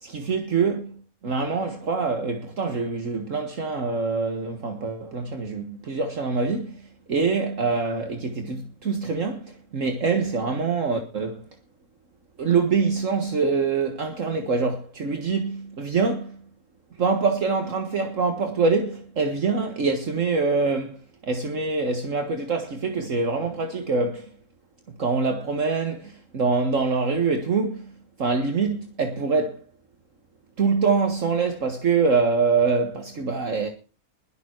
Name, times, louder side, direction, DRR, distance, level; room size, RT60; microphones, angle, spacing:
voice 1, 0.0-11.4 12.4-16.4 17.0-21.0 21.2-24.3 24.9-29.6 30.6-33.7, right 4 dB, 60° right, 1.9 m, -25 dB
21.0 x 7.3 x 4.6 m
omnidirectional pair, 1.6 m